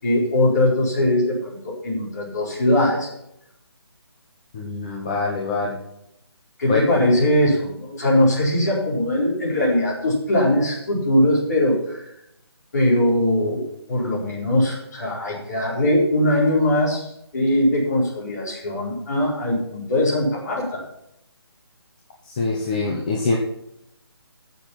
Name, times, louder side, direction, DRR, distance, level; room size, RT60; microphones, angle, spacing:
voice 1, 0.0-3.1 6.6-12.0 12.7-20.8, left 1 dB, 40° left, -3 dB, 4.5 m, -21 dB
voice 2, 4.5-5.8 6.7-6.8 22.2-23.4, left 3 dB, 20° left, -1 dB, 0.9 m, -24 dB
13.0 x 7.0 x 5.9 m, 0.79 s
hypercardioid pair, 175°, 14 cm